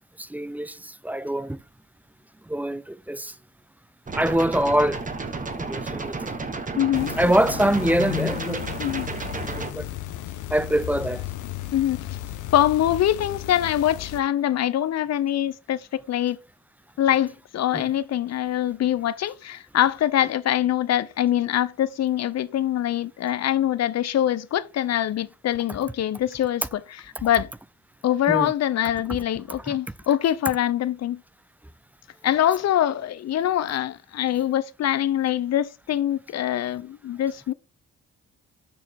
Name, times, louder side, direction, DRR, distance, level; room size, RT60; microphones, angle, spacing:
voice 1, 0.2-1.6 2.5-3.3 4.1-5.0 5.5-6.3 7.2-8.6 9.4-9.9 10.5-11.2 17.7-17.8 28.3-28.5 29.7-29.8, right 1 dB, 5° right, 0.4 m, -24 dB
sound 1, 4.1-9.7, right 3 dB, 25° right, 1.4 m, -32 dB
voice 2, 6.8-7.2 8.8-9.1 11.7-12.2 12.5-16.4 17.0-27.5 28.0-31.2 32.2-37.5, left 11 dB, 60° left, 0.7 m, -24 dB
sound 2, 6.9-14.2, left 13 dB, 85° left, 0.9 m, -34 dB
7.0 x 6.4 x 3.6 m
cardioid pair, 90°, 30 cm